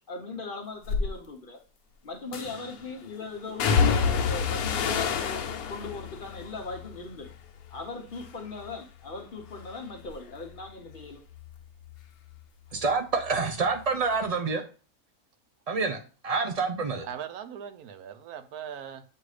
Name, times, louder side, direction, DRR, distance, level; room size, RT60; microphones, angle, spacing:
voice 1, 0.1-1.6 2.0-7.3 7.7-11.2, left 3 dB, 45° left, 0.8 m, -39 dB
sound 1, 0.8-1.1 2.3-2.8 3.6-7.8 8.1-8.8 9.1-12.4 12.7-13.8 14.1-14.3, left 6 dB, 80° left, 1.2 m, -30 dB
voice 2, 12.7-14.6 15.7-17.1, right 4 dB, 70° right, 0.3 m, -27 dB
voice 3, 17.0-19.0, right 8 dB, 85° right, 1.2 m, -40 dB
7.7 x 2.7 x 4.9 m
omnidirectional pair, 1.5 m